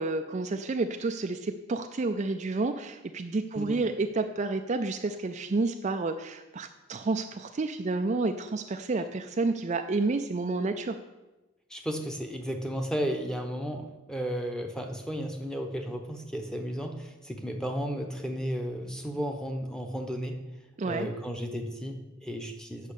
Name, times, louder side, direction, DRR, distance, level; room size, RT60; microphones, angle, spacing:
voice 1, 0.0-11.0 20.8-21.1, right 3 dB, 35° right, 6 dB, 0.4 m, -30 dB
voice 2, 11.7-20.4 20.8-22.9, equal, 5° left, 3 dB, 0.9 m, -34 dB
8.2 x 6.4 x 6.7 m, 1.1 s
head